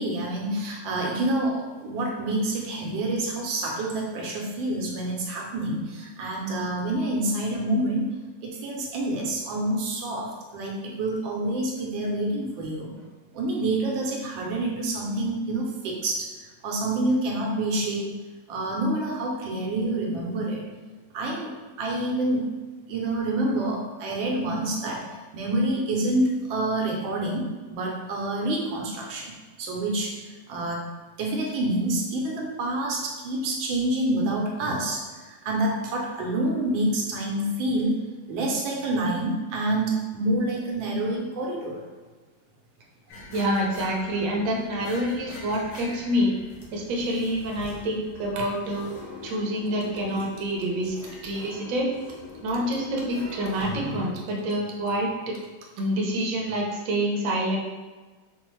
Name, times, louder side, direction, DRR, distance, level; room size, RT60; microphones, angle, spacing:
voice 1, 0.0-8.1 8.4-12.9 13.3-16.3 16.6-18.1 18.5-20.6 21.1-21.5 21.8-22.5 22.9-25.1 25.3-29.3 29.6-30.9 31.2-37.9 38.3-41.8 48.4-48.5, right 1 dB, 85° right, -1 dB, 1.4 m, -27 dB
sound 1, 43.1-54.1, left 2 dB, 70° left, 1.2 m, -42 dB
voice 2, 43.3-46.3 46.7-48.9 49.2-51.0 51.2-51.9 52.4-55.4 55.8-57.6, equal, 60° right, -1 dB, 0.9 m, -27 dB
5.1 x 2.1 x 3.0 m, 1.3 s
omnidirectional pair, 2.0 m